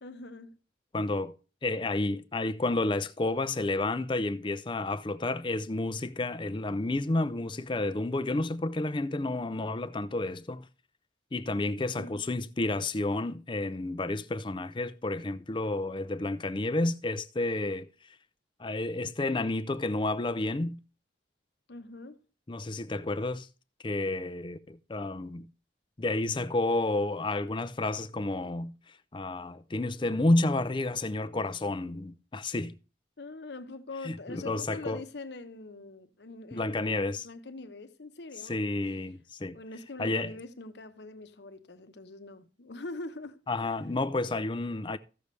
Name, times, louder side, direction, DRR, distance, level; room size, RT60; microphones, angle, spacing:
voice 1, 0.0-0.6 12.0-12.2 21.7-22.2 33.2-39.0 39.5-43.8, left 2 dB, 65° left, 0.9 m, -43 dB
voice 2, 0.9-1.3 1.6-10.7 11.3-17.9 18.6-20.8 22.5-23.5 23.8-25.5 26.0-28.7 29.1-32.7 34.0-35.0 36.5-37.3 38.4-39.6 40.0-40.3 43.5-45.0, left 2 dB, 25° left, 0.5 m, -30 dB
14.5 x 6.8 x 3.2 m
head